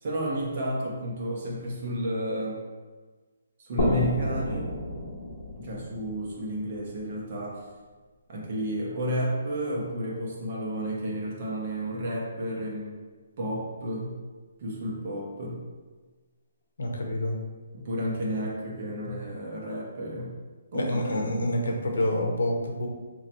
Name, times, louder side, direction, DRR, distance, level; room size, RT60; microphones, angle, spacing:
voice 1, 0.0-2.6 3.6-4.7 5.6-7.7 8.3-13.0 13.4-14.1 14.6-15.6 17.7-20.3 20.7-21.2, equal, 40° right, -3 dB, 0.8 m, -32 dB
sound 1, 3.8-7.3, left 1 dB, 50° left, 1.2 m, -31 dB
voice 2, 16.8-17.4 20.7-22.9, left 1 dB, 85° left, 1 dB, 0.8 m, -27 dB
2.9 x 2.6 x 4.2 m, 1.3 s
hypercardioid pair, 170°, 0 cm